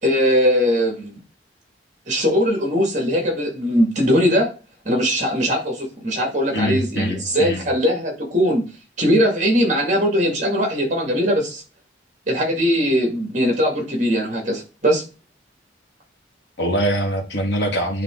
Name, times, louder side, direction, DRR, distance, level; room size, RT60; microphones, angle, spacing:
voice 1, 0.0-1.1 2.1-4.5 4.8-8.6 9.0-11.6 12.3-15.0, equal, 40° right, 2 dB, 2.4 m, -20 dB
voice 2, 6.5-7.6 16.6-18.0, equal, 65° left, 2 dB, 1.8 m, -23 dB
10.0 x 3.4 x 3.9 m, 0.32 s
head